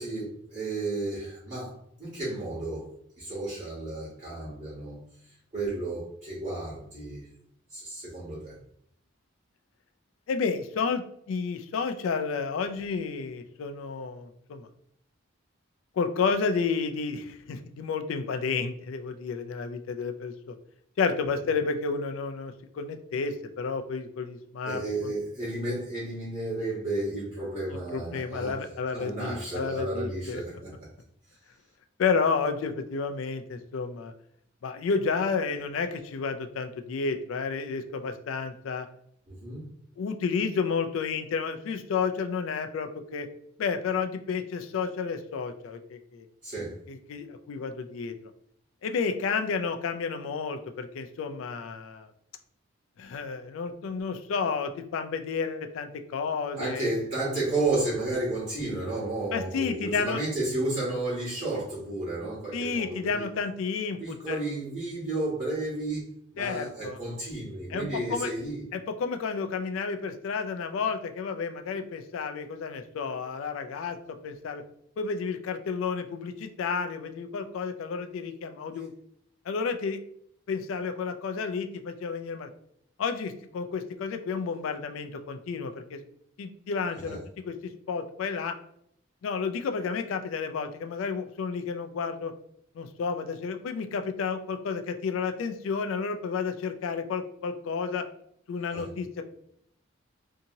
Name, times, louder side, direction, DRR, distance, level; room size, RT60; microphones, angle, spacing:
voice 1, 0.0-2.9 3.2-5.0 5.5-7.3 7.7-8.6 24.6-28.6 28.9-30.9 39.3-39.7 46.4-46.8 56.6-63.2 64.0-66.1 66.3-68.6 86.9-87.2 98.7-98.8, right 2 dB, 35° right, -9 dB, 1.1 m, -32 dB
voice 2, 10.3-11.0 11.3-14.7 16.0-20.6 21.0-25.1 27.9-30.4 32.0-34.1 34.6-38.9 40.0-43.3 43.6-46.2 46.9-48.1 48.8-52.1 53.0-56.9 59.3-60.2 62.5-64.4 66.4-67.0 67.7-68.3 68.7-74.6 75.0-78.9 79.5-80.0 80.5-82.5 83.0-86.0 86.4-87.2 87.5-88.6 89.2-92.3 92.8-98.1 98.5-99.2, left 5 dB, 80° left, 7 dB, 0.3 m, -31 dB
2.8 x 2.6 x 2.7 m, 0.69 s
head